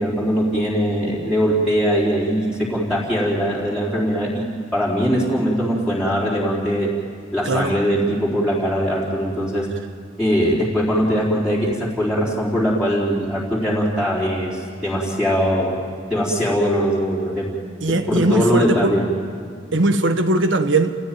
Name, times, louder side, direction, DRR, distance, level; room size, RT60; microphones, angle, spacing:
voice 1, 0.0-6.9 7.3-9.7 10.2-15.8 16.1-17.5 18.1-19.0, equal, 5° right, 3.9 m, -21 dB
voice 2, 17.8-18.9 19.7-20.9, right 2 dB, 80° right, 1.4 m, -19 dB
29.5 x 16.5 x 9.2 m
head